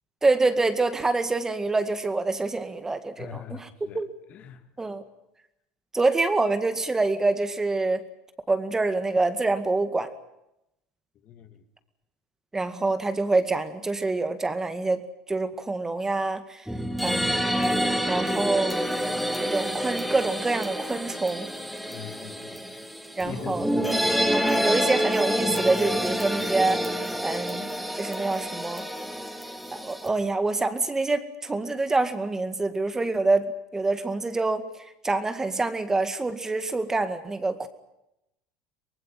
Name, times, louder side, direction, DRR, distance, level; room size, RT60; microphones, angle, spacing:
voice 1, 0.2-3.7 3.9-4.1 4.8-5.0 5.9-8.0 8.5-10.1 12.5-16.7 17.0-17.6 18.0-18.8 19.4-21.5 23.2-23.7 24.0-24.1 24.6-27.7 28.0-28.8 29.7-34.6 35.0-37.7, right 3 dB, 15° right, 2.1 m, -26 dB
voice 2, 3.2-5.0 11.2-11.6 21.9-22.7 23.2-24.0, left 8 dB, 50° left, 2.4 m, -42 dB
sound 1, 16.7-30.1, equal, ahead, 2.7 m, -28 dB
24.0 x 19.0 x 9.2 m
supercardioid pair, 100°, 3 cm